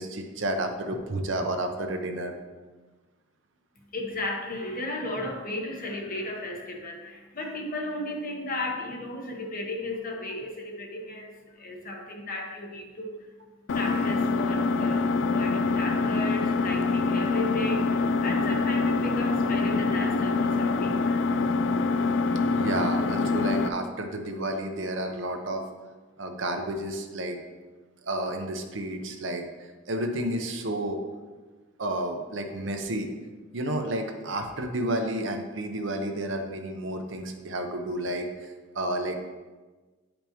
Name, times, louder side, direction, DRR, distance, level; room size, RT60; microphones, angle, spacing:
voice 1, 0.0-2.3 22.5-25.6 26.2-27.4 28.0-31.0 31.8-33.1 33.5-39.4, right 1 dB, 70° right, 4 dB, 0.8 m, -31 dB
voice 2, 3.9-13.3 13.7-21.3, left 1 dB, 45° left, 1 dB, 1.2 m, -35 dB
Engine, 13.7-23.7, left 3 dB, 65° left, 0.4 m, -25 dB
10.0 x 5.2 x 3.0 m, 1.3 s
head